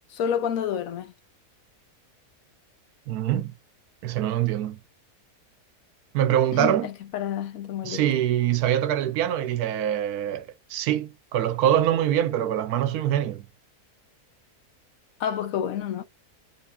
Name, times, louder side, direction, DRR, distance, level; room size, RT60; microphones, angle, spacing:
voice 1, 0.1-1.1 6.5-8.0 15.2-16.0, left 9 dB, 70° left, 1.0 m, -29 dB
voice 2, 3.1-3.5 4.0-4.8 6.1-6.9 7.8-13.5, right 11 dB, 75° right, 1.1 m, -24 dB
3.6 x 2.5 x 3.4 m
omnidirectional pair, 1.6 m